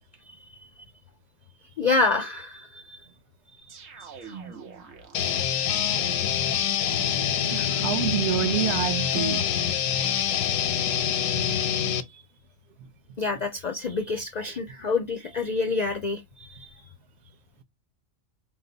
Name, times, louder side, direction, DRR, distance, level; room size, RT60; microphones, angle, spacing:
voice 1, 1.8-3.0 4.0-4.3 13.2-16.7, left 3 dB, 65° left, 0.4 m, -27 dB
sound 1, 3.7-5.9, right 6 dB, 90° right, 1.3 m, -44 dB
sound 2, 5.1-12.0, left 9 dB, 90° left, 1.0 m, -25 dB
voice 2, 7.5-9.4 12.1-12.2, right 11 dB, 65° right, 0.8 m, -28 dB
4.7 x 2.0 x 3.8 m
omnidirectional pair, 1.3 m